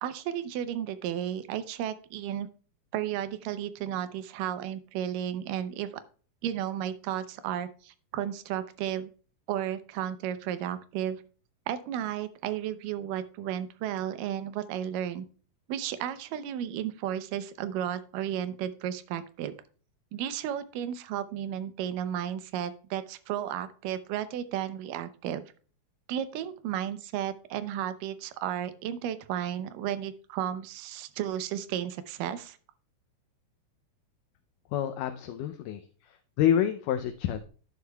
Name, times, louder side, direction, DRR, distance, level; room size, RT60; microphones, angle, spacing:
voice 1, 0.0-2.5 2.9-5.9 6.4-9.1 9.5-11.2 11.7-15.3 15.7-19.5 20.1-25.4 26.1-32.6, right 10 dB, 85° right, 11 dB, 2.4 m, -33 dB
voice 2, 34.7-37.5, left 10 dB, 80° left, 7 dB, 2.1 m, -28 dB
11.0 x 9.8 x 2.3 m, 0.39 s
omnidirectional pair, 3.8 m